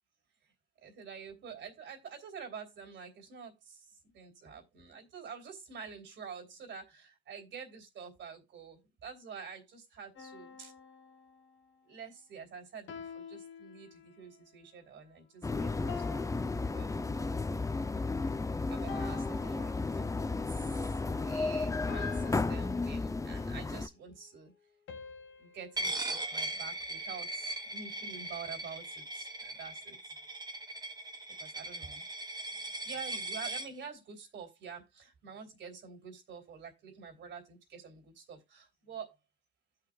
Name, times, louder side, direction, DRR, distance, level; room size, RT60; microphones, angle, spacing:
voice 1, 0.8-3.8 4.1-10.7 11.8-16.2 16.7-17.4 18.7-20.8 21.2-24.5 25.4-30.0 31.4-32.0 32.8-39.2, right 6 dB, 70° right, 3.1 m, -48 dB
sound 1, 10.2-11.8 12.9-14.4 15.9-17.6 18.9-20.4 21.9-23.6 24.9-25.9, left 5 dB, 75° left, 1.7 m, -48 dB
sound 2, 15.4-23.9, left 3 dB, 15° left, 0.6 m, -33 dB
Coin (dropping), 25.8-33.7, right 2 dB, 20° right, 1.8 m, -39 dB
16.5 x 5.8 x 2.4 m
cardioid pair, 90°, 20 cm